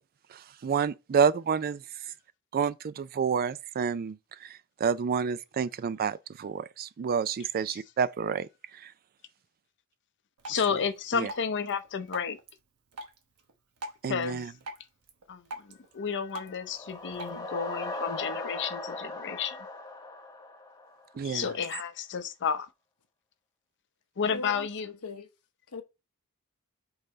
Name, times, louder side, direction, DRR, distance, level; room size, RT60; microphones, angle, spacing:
voice 1, 0.3-2.1 2.5-8.9 11.1-11.3 14.0-14.5 21.1-21.5, right 6 dB, 40° right, 0.3 m, -29 dB
Drip, 10.4-17.4, right 1 dB, 85° right, 1.0 m, -46 dB
voice 2, 10.5-12.4 14.1-14.4 15.3-19.7 21.2-22.7 24.2-24.9, left 6 dB, 55° left, 0.6 m, -32 dB
sound 1, 16.4-21.2, left 2 dB, 15° left, 0.8 m, -39 dB
voice 3, 24.3-25.3 25.7-25.8, left 3 dB, 80° left, 0.9 m, -40 dB
5.6 x 3.9 x 4.2 m
head